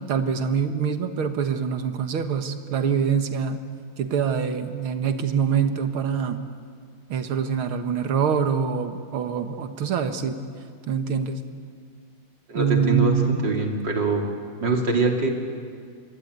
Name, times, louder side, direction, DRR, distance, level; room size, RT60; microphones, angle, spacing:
voice 1, 0.0-3.6 4.0-6.4 7.1-10.4 10.9-11.5 12.5-13.4, right 7 dB, 80° right, 7 dB, 2.3 m, -24 dB
voice 2, 12.5-13.2 13.4-14.3 14.6-15.3, right 3 dB, 55° right, 1 dB, 3.6 m, -23 dB
26.5 x 23.0 x 9.6 m, 2.1 s
omnidirectional pair, 2.3 m